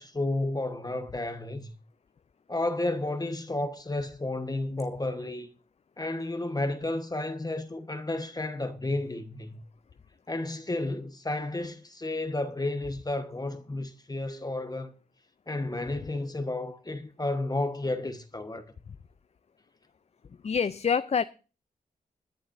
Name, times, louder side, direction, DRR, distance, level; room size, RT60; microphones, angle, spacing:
voice 1, 0.0-1.7 2.5-5.5 6.0-9.6 10.3-14.9 15.5-18.6, left 2 dB, 25° left, 1.2 m, -32 dB
voice 2, 20.4-21.2, left 6 dB, 45° left, 0.5 m, -26 dB
20.5 x 10.5 x 2.6 m
cardioid pair, 55°, 15 cm